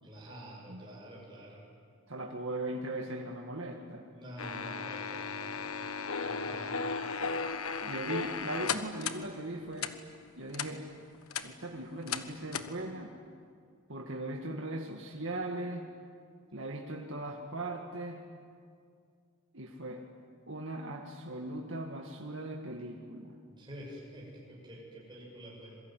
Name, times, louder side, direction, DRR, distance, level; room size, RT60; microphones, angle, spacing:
voice 1, 0.0-1.6 4.1-5.9 6.2-6.8 23.5-25.8, equal, 20° right, -4 dB, 7.4 m, -47 dB
voice 2, 2.1-4.0 7.8-9.9 10.4-10.8 11.4-13.1 13.9-15.9 16.5-18.2 19.5-20.0 20.5-23.4, right 1 dB, 60° right, 1 dB, 2.0 m, -39 dB
sound 1, 4.4-9.2 9.8-9.9 10.5-10.7 11.1-11.5 12.1-12.2 12.5-12.7, left 5 dB, 80° left, 1.3 m, -35 dB
26.5 x 22.5 x 9.4 m, 2.3 s
head